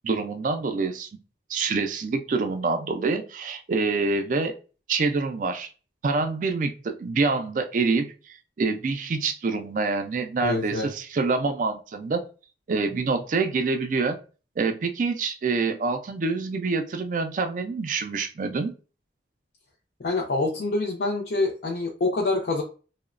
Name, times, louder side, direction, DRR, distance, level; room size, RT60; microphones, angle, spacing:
voice 1, 0.0-1.1 1.5-4.5 4.9-5.7 6.0-12.2 12.7-14.2 14.6-18.7, right 4 dB, 45° right, 7 dB, 0.3 m, -26 dB
voice 2, 10.4-10.9 20.0-22.6, left 2 dB, 60° left, -2 dB, 0.5 m, -26 dB
2.9 x 2.1 x 2.4 m, 0.35 s
head